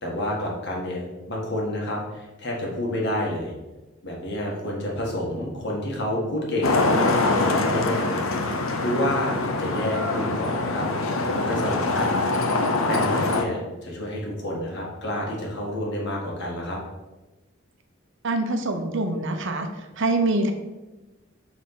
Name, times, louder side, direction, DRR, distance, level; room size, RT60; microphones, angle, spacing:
voice 1, 0.0-3.5 4.0-6.8 7.2-10.9 11.2-12.2 12.8-16.8, left 1 dB, 60° left, -2 dB, 1.7 m, -29 dB
Traffic noise roadway noise, 6.6-13.5, left 2 dB, 85° left, 0.7 m, -24 dB
voice 2, 18.2-19.7 20.0-20.5, right 2 dB, 60° right, 6 dB, 0.7 m, -24 dB
6.3 x 3.5 x 5.7 m, 1.1 s
head